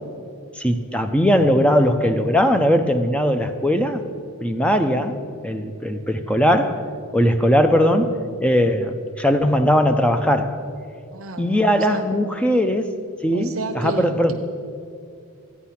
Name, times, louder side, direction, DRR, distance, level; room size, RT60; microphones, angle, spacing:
voice 1, 0.6-4.0 4.4-5.2 5.4-6.8 7.1-8.1 8.4-10.6 11.4-12.9 13.2-14.3, equal, 5° left, 7 dB, 0.5 m, -19 dB
voice 2, 11.1-12.0 13.3-14.3, right 2 dB, 70° right, 5 dB, 0.9 m, -31 dB
13.0 x 9.5 x 5.8 m, 2.4 s
head